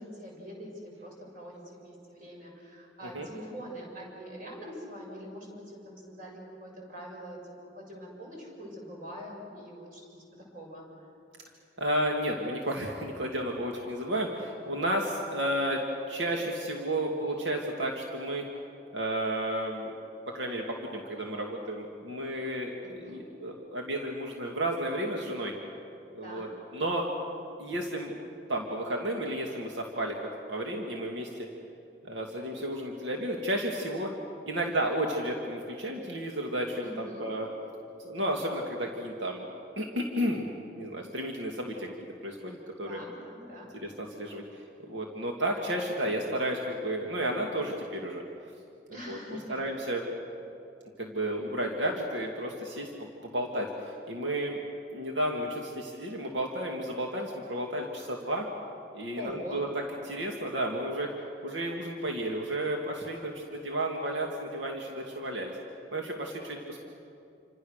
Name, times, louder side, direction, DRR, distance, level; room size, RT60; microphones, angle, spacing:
voice 1, 0.0-7.4 7.7-10.2 10.5-10.9 22.8-23.3 26.2-26.5 36.8-37.3 42.8-43.7 48.9-49.6 59.2-59.6, equal, 45° right, -2 dB, 7.1 m, -44 dB
voice 2, 11.8-15.8 16.1-18.4 18.9-19.9 20.3-25.5 26.1-27.0 27.6-28.1 28.5-30.2 30.5-31.5 32.0-34.1 34.5-37.5 38.0-39.5 39.8-40.4 40.7-42.0 42.2-43.0 43.7-44.6 44.9-48.2 48.9-49.2 49.5-50.0 51.0-54.6 54.9-58.5 58.9-59.7 60.0-61.1 61.4-65.5 65.9-66.8, right 1 dB, 85° right, 0 dB, 2.3 m, -32 dB
28.5 x 25.5 x 6.6 m, 2.6 s
head